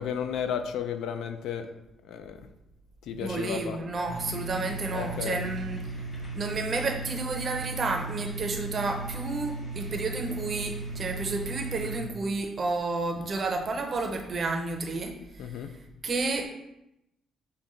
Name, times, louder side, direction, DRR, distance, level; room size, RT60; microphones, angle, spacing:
voice 1, 0.0-1.7 2.0-2.4 3.1-3.8 4.9-5.4 15.4-15.7, left 8 dB, 75° left, 8 dB, 0.3 m, -33 dB
voice 2, 3.2-5.9 6.3-15.1 16.0-16.5, right 3 dB, 30° right, 3 dB, 0.5 m, -31 dB
sound 1, 4.1-12.0, right 3 dB, 25° left, 1.1 m, -36 dB
5.3 x 2.2 x 3.7 m, 0.86 s
cardioid pair, 160°, 0 cm